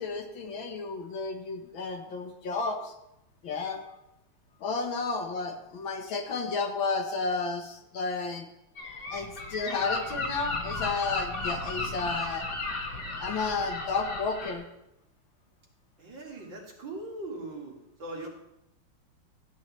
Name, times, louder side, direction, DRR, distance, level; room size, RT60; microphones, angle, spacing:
voice 1, 0.0-2.9 3.4-3.8 4.6-8.5 9.1-12.5 13.2-14.7, left 4 dB, 65° left, 4 dB, 1.8 m, -32 dB
Gull seagull, 8.8-14.5, left 3 dB, 50° left, 2.1 m, -34 dB
voice 2, 16.0-18.3, right 2 dB, 60° right, -2 dB, 2.7 m, -40 dB
14.0 x 9.1 x 3.2 m, 0.84 s
omnidirectional pair, 2.4 m